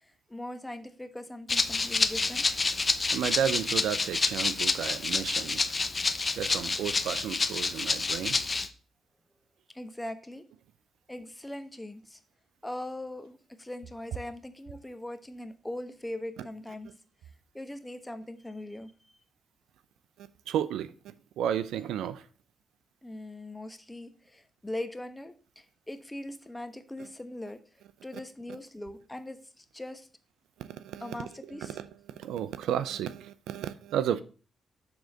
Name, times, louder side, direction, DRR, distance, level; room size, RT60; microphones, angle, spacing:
voice 1, 0.0-2.5 9.7-10.5 11.1-12.2 12.6-16.9 17.5-18.9 23.0-27.6 28.0-30.1 31.0-31.8, left 1 dB, 10° left, 1.1 m, -40 dB
Rattle (instrument), 1.5-8.7, left 3 dB, 35° left, 0.8 m, -28 dB
voice 2, 3.1-5.7 6.3-8.4 20.2-22.3 30.6-34.2, right 9 dB, 85° right, 0.5 m, -33 dB
7.0 x 3.9 x 6.3 m
cardioid pair, 65°, 0 cm